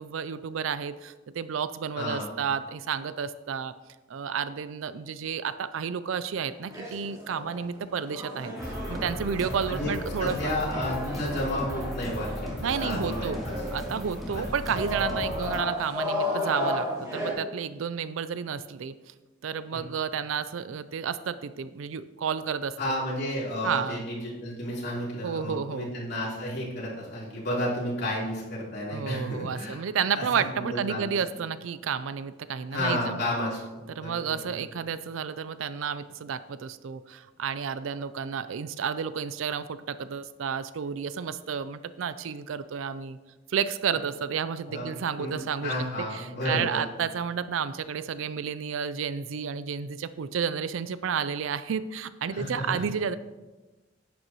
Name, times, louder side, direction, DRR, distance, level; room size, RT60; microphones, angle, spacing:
voice 1, 0.0-3.7 4.1-8.5 8.9-10.5 12.6-13.4 13.7-19.1 19.4-22.8 23.6-24.0 25.2-25.9 28.9-33.3 33.9-43.2 43.5-45.7 46.1-53.2, right 7 dB, 80° right, 14 dB, 0.4 m, -31 dB
voice 2, 1.9-2.3 9.7-13.5 14.3-14.4 14.7-14.8 19.7-19.8 22.8-29.8 30.1-30.2 30.5-31.2 32.7-33.6 34.0-34.6 44.7-44.9 45.2-46.8 52.3-52.9, left 1 dB, 55° left, -6 dB, 3.5 m, -32 dB
sound 1, 6.5-17.3, left 1 dB, 20° right, 3.1 m, -34 dB
sound 2, 8.6-15.6, equal, ahead, 2.5 m, -37 dB
10.5 x 9.4 x 3.0 m, 1.2 s
head